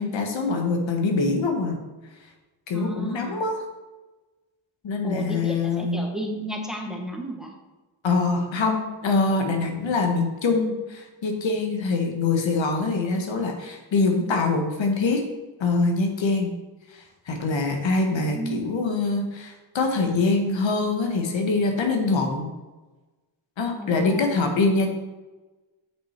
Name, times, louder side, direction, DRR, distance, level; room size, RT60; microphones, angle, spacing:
voice 1, 0.0-1.8 2.7-3.6 4.8-6.0 8.0-15.2 15.6-16.5 16.9-22.5 23.6-24.9, left 3 dB, 70° left, 3 dB, 1.5 m, -24 dB
voice 2, 2.7-3.4 5.0-7.5 18.3-18.7 23.8-24.6, equal, ahead, 1 dB, 1.6 m, -33 dB
8.0 x 6.5 x 4.5 m, 1.2 s
cardioid pair, 80°, 47 cm